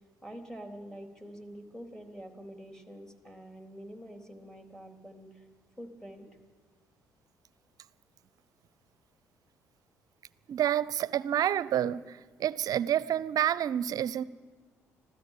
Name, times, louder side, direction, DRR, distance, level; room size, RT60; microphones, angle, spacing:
voice 1, 0.2-5.4 5.8-6.4, equal, 5° left, 3.7 m, -46 dB
voice 2, 10.5-14.2, right 11 dB, 55° right, 0.7 m, -29 dB
26.5 x 16.0 x 7.6 m
figure-of-eight pair, 50°, 8 cm